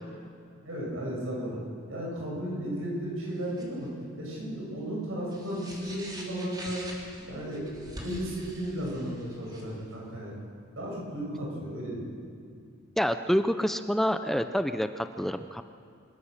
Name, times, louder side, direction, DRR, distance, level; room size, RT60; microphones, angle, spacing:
voice 1, 0.6-1.6 1.9-3.9 4.2-6.8 7.2-10.3 10.8-12.0, equal, 85° right, -3 dB, 7.3 m, -34 dB
sound 1, 3.3-3.9 5.2-9.9, right 1 dB, 20° right, 3.4 m, -45 dB
voice 2, 13.0-15.6, equal, ahead, 9 dB, 0.5 m, -27 dB
26.0 x 16.0 x 6.6 m, 2.4 s
head